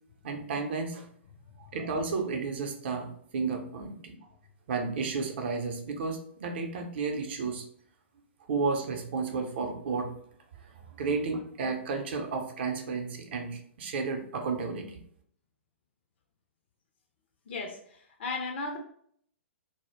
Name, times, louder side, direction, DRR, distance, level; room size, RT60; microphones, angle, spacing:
voice 1, 0.2-1.1 1.6-4.2 4.7-7.6 8.4-10.1 10.6-15.0, right 4 dB, 55° right, 4 dB, 0.5 m, -32 dB
voice 2, 17.5-18.8, left 3 dB, 55° left, 3 dB, 0.4 m, -36 dB
2.1 x 2.0 x 3.1 m, 0.64 s
figure-of-eight pair, 115°, 7 cm